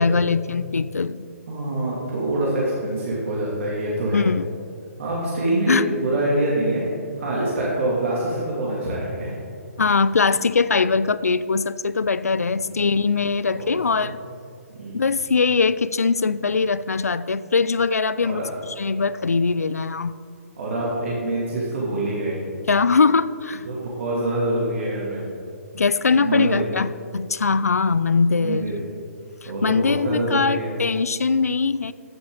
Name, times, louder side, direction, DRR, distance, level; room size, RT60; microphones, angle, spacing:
voice 1, 0.0-1.3 4.1-4.5 5.7-5.9 9.8-14.2 14.9-20.1 22.7-23.6 25.7-28.7 29.4-31.9, left 4 dB, 80° left, 17 dB, 0.4 m, -21 dB
voice 2, 1.5-4.3 5.0-6.8 7.2-9.3 12.5-12.6 13.5-13.7 14.0-14.1 14.7-15.0 18.2-18.5 20.6-22.3 23.6-25.2 26.2-26.6 28.4-28.7 29.4-30.7, right 1 dB, 55° right, -6 dB, 2.6 m, -25 dB
14.0 x 7.1 x 3.9 m, 2.4 s
figure-of-eight pair, 135°, 8 cm